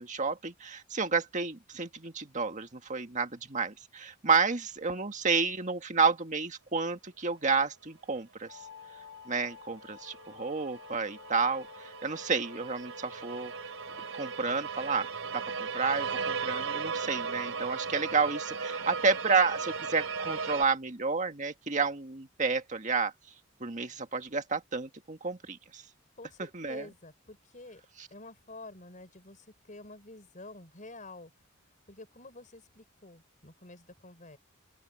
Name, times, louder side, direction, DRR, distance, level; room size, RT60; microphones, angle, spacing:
voice 1, 0.0-8.6 9.3-13.5 14.1-15.1 15.3-23.1 23.6-25.8 26.5-26.8, right 4 dB, 35° right, 1.8 m, -30 dB
sound 1, 8.5-14.5, left 5 dB, 85° left, 3.0 m, -51 dB
sound 2, 9.5-9.6 9.9-20.6, right 5 dB, 75° right, 3.6 m, -37 dB
voice 2, 26.2-27.8 28.1-31.3 31.9-34.4, left 2 dB, 40° left, 5.3 m, -49 dB
open air
head